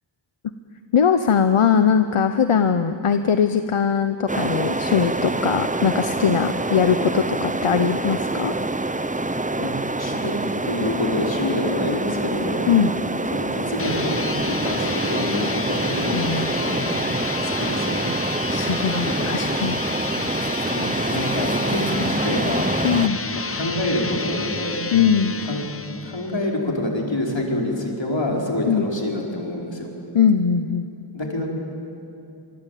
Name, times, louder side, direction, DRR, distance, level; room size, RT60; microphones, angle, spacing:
voice 1, 0.9-8.5 12.7-12.9 16.1-16.9 18.5-19.8 22.8-23.2 24.9-25.3 28.7-28.9 30.1-30.9, left 7 dB, 85° left, 9 dB, 0.9 m, -20 dB
sound 1, 4.3-23.1, right 2 dB, 15° right, 0.8 m, -26 dB
voice 2, 9.3-10.4 10.6-12.6 13.3-17.0 17.4-18.1 19.0-19.3 20.7-22.7 23.3-24.8 25.4-25.6 26.0-29.9 31.1-31.5, left 1 dB, 60° left, -1 dB, 4.9 m, -27 dB
sound 2, 13.7-26.5, left 4 dB, 30° left, 0.8 m, -30 dB
25.5 x 24.0 x 9.3 m, 2.7 s
wide cardioid pair, 50°, 49 cm